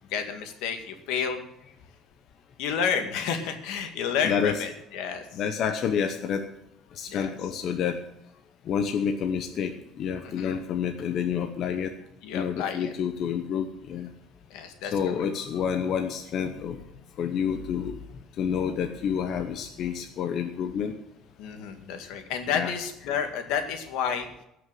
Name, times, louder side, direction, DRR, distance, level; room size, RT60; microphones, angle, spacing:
voice 1, 0.1-1.4 2.6-5.4 7.1-7.3 10.2-10.5 12.2-12.9 14.5-14.9 21.4-24.3, left 7 dB, 80° left, 6 dB, 2.0 m, -30 dB
voice 2, 4.2-4.6 5.3-6.4 6.9-8.0 8.7-9.7 10.0-11.9 12.3-14.1 14.9-16.8 17.2-17.9 18.4-20.9 22.5-22.7, left 7 dB, 45° left, 6 dB, 0.9 m, -28 dB
17.5 x 6.2 x 7.5 m, 0.82 s
cardioid pair, 165°, 0 cm